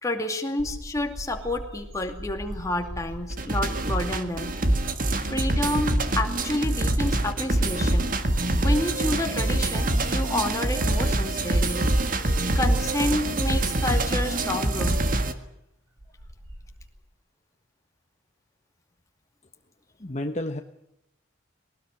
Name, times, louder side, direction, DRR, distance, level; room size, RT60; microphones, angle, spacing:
voice 1, 0.0-4.5 5.2-8.1 8.6-11.9 12.5-15.1, left 1 dB, 15° left, 4 dB, 2.4 m, -29 dB
sound 1, 0.6-6.6 7.0-7.4 7.7-8.7 9.3-11.6 12.0-12.2 13.3-13.4 15.5-15.6 16.0-16.9, right 1 dB, 90° right, 7.5 m, -42 dB
sound 2, 3.3-15.3, right 1 dB, 40° right, 1.6 m, -25 dB
voice 2, 20.0-20.6, left 1 dB, 35° left, 6 dB, 1.0 m, -30 dB
20.5 x 19.0 x 9.6 m, 0.80 s
head